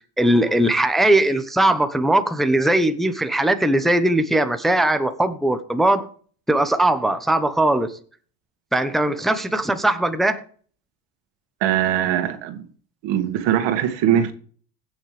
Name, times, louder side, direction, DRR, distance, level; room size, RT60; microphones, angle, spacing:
voice 1, 0.2-6.1 6.5-8.0 8.7-10.4, right 1 dB, ahead, 1.0 m, -19 dB
voice 2, 11.6-12.6 13.0-14.3, right 10 dB, 65° right, 2.3 m, -21 dB
17.0 x 6.3 x 3.4 m
supercardioid pair, 90°, 47 cm